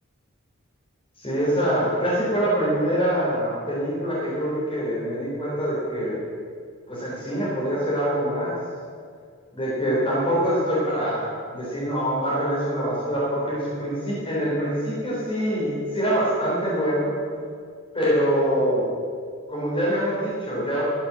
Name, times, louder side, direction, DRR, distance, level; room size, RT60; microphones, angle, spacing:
voice 1, 1.2-6.2 6.9-8.5 9.5-17.1 17.9-18.9 19.5-20.8, equal, 25° left, -8 dB, 3.8 m, -24 dB
13.0 x 8.1 x 7.6 m, 2.1 s
head